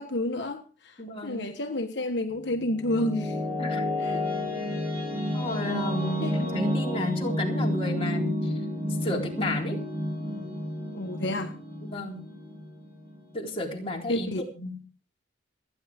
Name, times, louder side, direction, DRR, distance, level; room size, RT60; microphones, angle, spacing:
voice 1, 0.0-3.4 4.0-4.2 6.2-6.4 10.9-11.6 14.1-14.4, left 1 dB, 65° left, 1.3 m, -30 dB
voice 2, 1.0-1.4 3.6-3.9 5.3-8.5 8.8-9.8 11.8-12.3 13.3-14.8, left 1 dB, 30° left, 3.9 m, -33 dB
sound 1, 2.3-13.3, left 1 dB, 10° right, 7.3 m, -30 dB
28.0 x 10.0 x 3.6 m
head